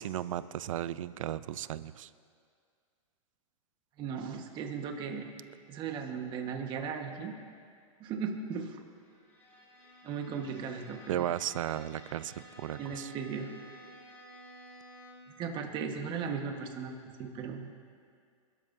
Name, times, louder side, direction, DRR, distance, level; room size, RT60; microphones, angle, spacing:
voice 1, 0.0-2.1 11.1-13.1, right 11 dB, 70° right, 16 dB, 0.6 m, -35 dB
voice 2, 4.0-5.3 5.7-7.3 8.0-8.8 10.0-11.2 12.8-13.5 15.4-16.9 17.2-17.7, right 6 dB, 25° right, 4 dB, 1.4 m, -37 dB
Bowed string instrument, 9.0-15.4, equal, 10° left, 3.5 m, -53 dB
29.0 x 13.0 x 2.7 m, 2.2 s
hypercardioid pair, 145°, 17 cm